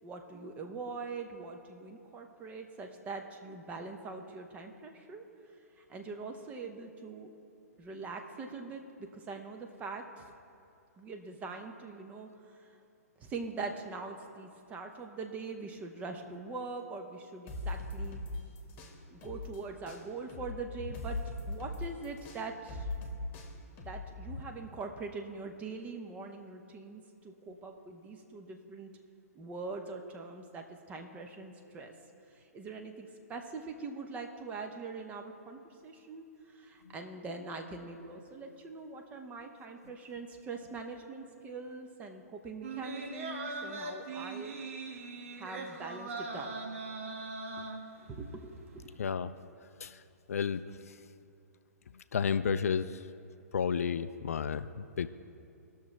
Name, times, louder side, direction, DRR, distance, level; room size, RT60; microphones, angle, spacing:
voice 1, 0.0-5.2 5.8-7.3 7.8-10.2 11.0-12.6 13.2-18.2 19.1-21.2 21.5-22.9 23.8-28.9 29.3-31.9 32.3-44.5 45.4-46.5 47.6-47.7 48.1-48.9, right 4 dB, 15° right, 4 dB, 0.8 m, -43 dB
sound 1, 17.5-19.6 19.9-24.4, left 2 dB, 25° left, 1.3 m, -39 dB
sound 2, 42.6-48.3 48.7-48.8, right 3 dB, 55° right, 1.0 m, -40 dB
voice 2, 49.0-49.3 49.8-50.0 50.3-50.6 52.1-53.0 53.5-55.1, left 6 dB, 65° left, 13 dB, 0.4 m, -31 dB
19.0 x 6.5 x 3.2 m, 2.6 s
figure-of-eight pair, 120°, 9 cm